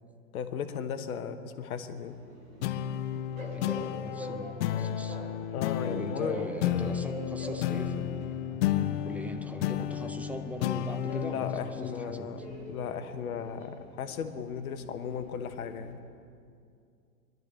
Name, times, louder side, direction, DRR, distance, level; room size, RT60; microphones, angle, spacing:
voice 1, 0.3-2.2 5.5-6.5 11.1-16.0, left 7 dB, 65° left, 9 dB, 1.2 m, -36 dB
Train, 2.0-15.9, equal, 70° right, 4.1 m, -46 dB
sound 1, 2.6-13.4, left 10 dB, 50° left, 0.7 m, -33 dB
voice 2, 3.5-5.2 5.8-8.6 9.0-12.4, right 1 dB, 5° right, 7 dB, 0.7 m, -41 dB
22.0 x 12.0 x 3.3 m, 2.3 s
figure-of-eight pair, 95°, 46 cm